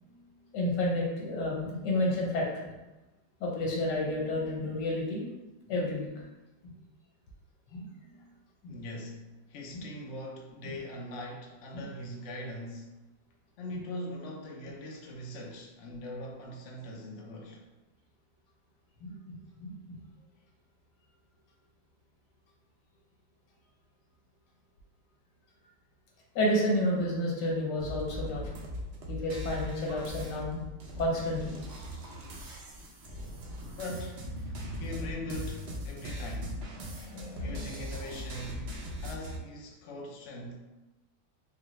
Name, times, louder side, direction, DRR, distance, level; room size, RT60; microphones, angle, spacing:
voice 1, 0.5-2.7 3.4-5.2 5.7-6.2 6.6-6.7 7.7-8.2 8.6-8.8 9.7-9.8 11.7-11.9 13.7-13.8 19.0-20.0 26.3-28.4 29.1-30.6 31.0-31.5 36.8-37.8, left 1 dB, 85° left, -3 dB, 1.5 m, -31 dB
voice 2, 8.7-12.9 13.6-17.6 33.6-34.2 34.8-36.6 37.4-40.6, left 1 dB, 60° left, -1 dB, 0.8 m, -41 dB
sound 1, 27.8-39.4, equal, 80° right, 0.5 m, -39 dB
3.8 x 2.3 x 3.1 m, 1.1 s
omnidirectional pair, 1.8 m